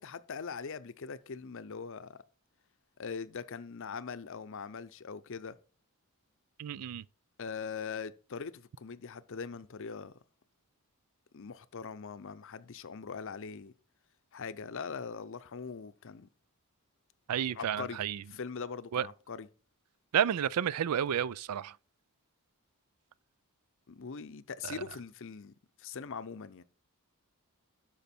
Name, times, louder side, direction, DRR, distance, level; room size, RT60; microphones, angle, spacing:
voice 1, 0.0-2.2 3.0-5.5 7.4-10.1 11.3-13.7 14.3-16.3 17.5-18.0 18.3-19.5 23.9-25.5 25.8-26.6, left 5 dB, 60° left, 0.6 m, -41 dB
voice 2, 6.6-7.0 17.3-18.2 18.9-19.1 20.1-21.7 24.6-24.7, right 9 dB, 85° right, 0.4 m, -31 dB
12.0 x 5.2 x 4.4 m
head